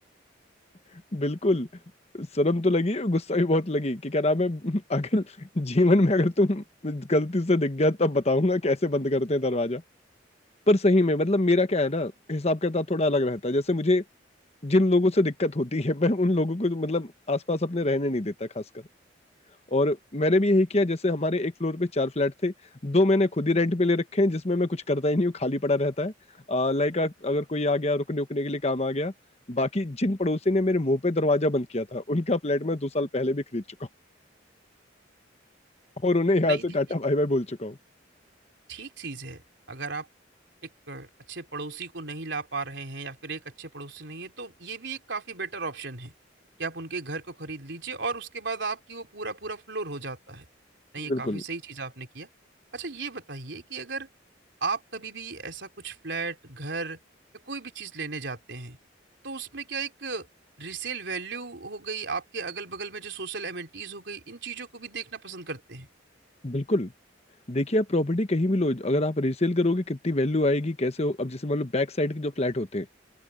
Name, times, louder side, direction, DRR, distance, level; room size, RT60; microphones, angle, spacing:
voice 1, 1.1-1.7 2.1-9.8 10.7-14.0 14.6-18.6 19.7-22.5 22.8-26.1 26.5-29.1 29.5-33.6 36.0-37.8 51.1-51.4 66.4-66.9 67.5-72.9, left 2 dB, 35° left, 1.1 m, -24 dB
voice 2, 36.4-36.8 38.7-40.1 40.6-46.1 46.6-50.5 50.9-52.3 52.7-54.1 54.6-57.0 57.5-58.8 59.2-60.3 60.6-65.9, right 4 dB, 65° right, 3.8 m, -35 dB
open air
head